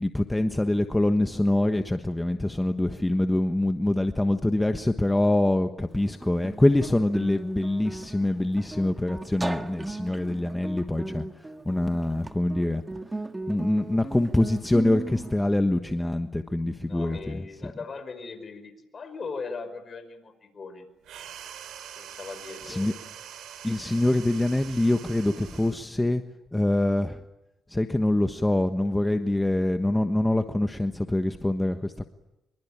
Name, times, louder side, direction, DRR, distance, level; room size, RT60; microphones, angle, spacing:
voice 1, 0.0-12.8 13.5-17.7 22.6-22.9 23.6-26.2 26.5-27.2 27.7-32.1, left 1 dB, 10° left, 7 dB, 1.3 m, -25 dB
Guitar, 5.9-15.4, right 2 dB, 15° right, 1.6 m, -37 dB
voice 2, 16.9-20.9 22.0-22.9, left 4 dB, 40° left, 10 dB, 5.2 m, -39 dB
sound 1, 21.0-25.8, right 9 dB, 80° right, 3.7 m, -44 dB
26.0 x 23.5 x 8.8 m, 0.97 s
cardioid pair, 90°, 0 cm